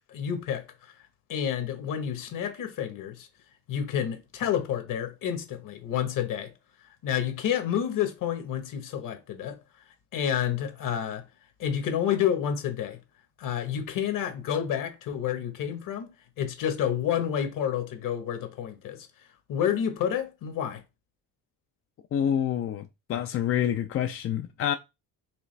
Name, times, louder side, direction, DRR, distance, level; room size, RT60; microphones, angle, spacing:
voice 1, 0.1-0.9 1.3-3.3 3.7-6.5 7.0-9.6 10.1-11.2 11.6-13.0 13.4-16.1 16.4-19.1 19.5-20.8, left 9 dB, 60° left, 1.2 m, -29 dB
voice 2, 22.1-24.7, left 10 dB, 40° left, 0.4 m, -27 dB
4.8 x 3.2 x 3.3 m
cardioid pair, 125°, 36 cm